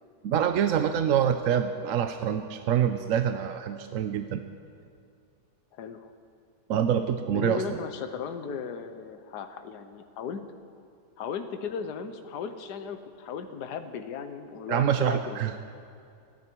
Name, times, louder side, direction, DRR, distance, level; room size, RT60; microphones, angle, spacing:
voice 1, 0.2-4.4 6.7-7.8 14.7-15.5, right 9 dB, 65° right, 8 dB, 0.9 m, -26 dB
voice 2, 5.7-6.1 7.3-10.4 11.2-15.6, left 6 dB, 75° left, 8 dB, 1.4 m, -36 dB
29.0 x 10.5 x 4.6 m, 2.4 s
omnidirectional pair, 1.8 m